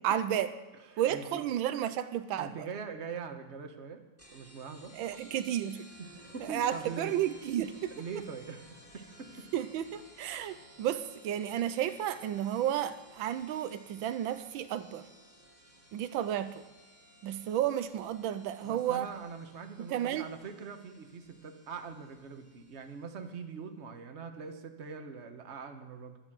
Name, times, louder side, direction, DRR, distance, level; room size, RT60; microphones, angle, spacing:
voice 1, 0.0-0.5 1.0-2.7 4.9-5.8 6.4-7.9 9.5-15.1 15.9-16.6 17.2-19.1 19.8-20.3, right 11 dB, 90° right, 12 dB, 1.5 m, -32 dB
voice 2, 0.9-1.5 2.4-4.0 4.3-4.9 6.0-7.1 7.9-9.5 18.6-26.2, right 5 dB, 40° right, 6 dB, 1.4 m, -43 dB
sound 1, 4.2-23.3, equal, 5° right, 2.9 m, -57 dB
12.0 x 9.7 x 7.7 m, 1.2 s
omnidirectional pair, 2.1 m